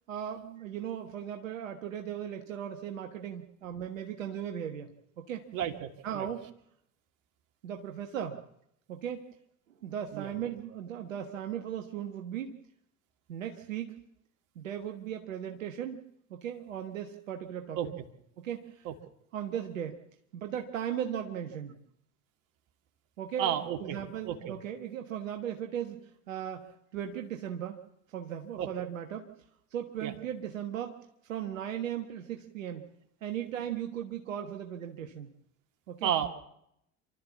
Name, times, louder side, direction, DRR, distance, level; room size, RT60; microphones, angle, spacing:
voice 1, 0.1-4.9 5.2-5.4 6.0-6.5 7.6-8.4 8.9-9.3 9.8-12.6 13.3-14.0 14.5-16.0 16.3-17.9 18.4-18.9 19.3-20.0 20.3-21.8 23.2-27.8 28.1-29.3 29.7-32.9 33.2-35.3 35.9-36.1, right 9 dB, 75° right, 4 dB, 1.5 m, -37 dB
voice 2, 5.5-5.9 6.2-6.3 10.1-10.3 17.8-17.9 18.9-19.0 23.4-24.0 24.2-24.5 28.6-28.7 30.0-30.1 36.0-36.3, right 10 dB, 50° right, 6 dB, 2.4 m, -31 dB
28.0 x 13.0 x 7.2 m, 0.76 s
figure-of-eight pair, 75°, 40 cm